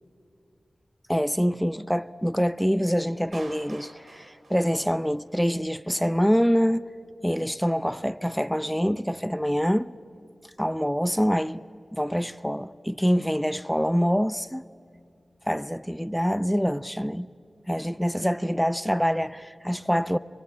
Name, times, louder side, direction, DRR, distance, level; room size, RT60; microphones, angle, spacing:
voice 1, 1.1-6.8 7.2-9.9 10.6-11.6 11.9-14.6 15.5-17.3 17.7-20.2, equal, ahead, 0.6 m, -25 dB
Clapping, 3.3-5.4, right 2 dB, 90° right, 3.3 m, -47 dB
25.0 x 23.0 x 8.4 m
wide cardioid pair, 85°, 0 cm